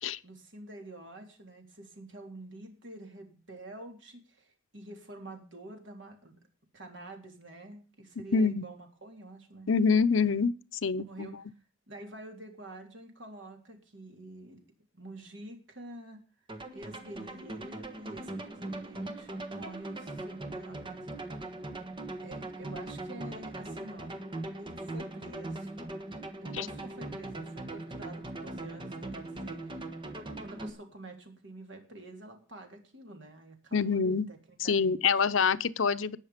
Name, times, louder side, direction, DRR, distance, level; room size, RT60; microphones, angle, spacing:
voice 1, 0.2-6.4 6.7-9.7 10.2-10.4 10.9-11.5 11.9-14.6 14.9-16.2 16.7-21.4 22.2-24.2 24.6-25.7 26.4-29.9 30.4-35.2, right 1 dB, 65° right, 3.6 m, -48 dB
voice 2, 8.3-8.6 9.7-10.5 10.8-11.3 26.5-26.7 33.7-34.3 34.6-36.2, left 5 dB, 80° left, 0.7 m, -26 dB
sound 1, 16.5-30.7, right 2 dB, 25° right, 1.4 m, -40 dB
19.0 x 6.6 x 5.1 m
head